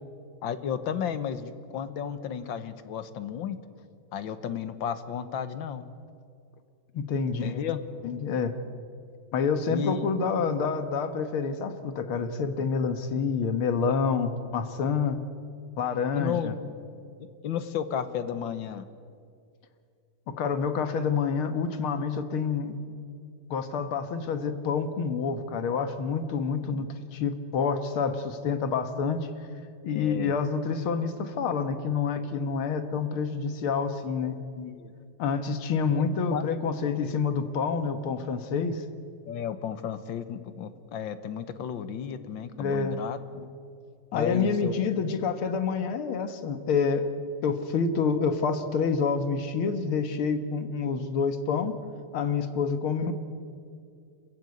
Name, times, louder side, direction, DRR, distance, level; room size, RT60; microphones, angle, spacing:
voice 1, 0.4-3.6 4.1-5.9 7.4-7.8 9.7-10.0 16.2-16.6 17.4-18.9 26.7-26.9 29.9-30.3 34.6-34.9 36.0-36.4 39.3-43.5 44.1-45.0, left 8 dB, 70° left, 12 dB, 1.8 m, -33 dB
voice 2, 6.9-7.6 8.0-8.6 9.3-15.2 15.8-16.5 20.3-22.8 23.5-29.3 29.8-34.4 35.2-38.8 42.6-43.0 44.1-47.1 47.4-51.8 52.1-53.1, left 5 dB, 90° left, 10 dB, 2.2 m, -28 dB
26.5 x 15.0 x 9.6 m, 2.3 s
omnidirectional pair, 2.3 m